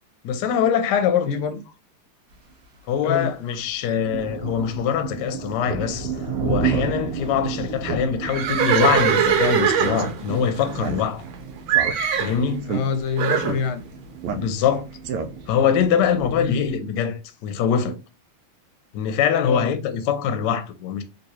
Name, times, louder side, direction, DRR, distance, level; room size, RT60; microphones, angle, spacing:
voice 1, 0.2-1.3 2.9-6.1 6.4-11.2 12.2-12.6 14.4-14.9 15.5-18.0 18.9-21.0, left 8 dB, 70° left, 1.1 m, -23 dB
voice 2, 1.3-1.6 3.0-3.3 12.6-13.8 16.3-16.6 19.4-19.7, left 5 dB, 90° left, 1.6 m, -26 dB
sound 1, 2.3-2.5 3.2-3.4 3.7-16.8, right 5 dB, 40° right, 0.9 m, -33 dB
Speech synthesizer, 5.6-5.9 6.2-6.3 6.6-6.9 7.3-7.4 7.9-8.0 8.3-8.4 8.8-9.0 9.8-10.0 10.7-11.3 11.7-12.3 12.6-12.8 13.4-13.6 14.2-14.7 15.0-15.6, right 6 dB, 90° right, 1.5 m, -30 dB
Livestock farm animals working animals, 8.2-11.3 11.7-12.4 13.2-13.6, right 8 dB, 70° right, 1.4 m, -22 dB
4.0 x 2.6 x 2.9 m
omnidirectional pair, 2.4 m